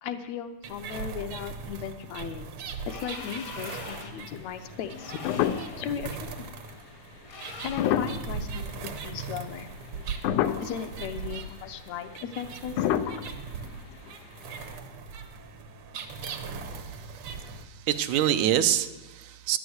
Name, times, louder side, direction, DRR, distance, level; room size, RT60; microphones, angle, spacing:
voice 1, 0.0-2.6 2.9-5.4 5.8-6.5 7.4-9.7 10.6-12.9, left 8 dB, 75° left, 7 dB, 1.9 m, -37 dB
sound 1, 0.6-17.6, right 5 dB, 60° right, 1.6 m, -39 dB
sound 2, 2.8-4.3 4.9-5.9 7.3-8.2, left 4 dB, 50° left, 1.1 m, -43 dB
sound 3, 3.2-3.9 4.3-4.4 4.9-6.0 6.4-6.5 7.5-9.0 9.4-9.9 10.2-10.9 11.3-11.4 11.6-11.8 12.7-14.3 14.5-14.6, left 11 dB, 90° left, 2.1 m, -29 dB
voice 2, 17.6-19.6, right 11 dB, 80° right, 10 dB, 2.0 m, -26 dB
11.5 x 10.5 x 7.9 m, 1.1 s
omnidirectional pair, 3.4 m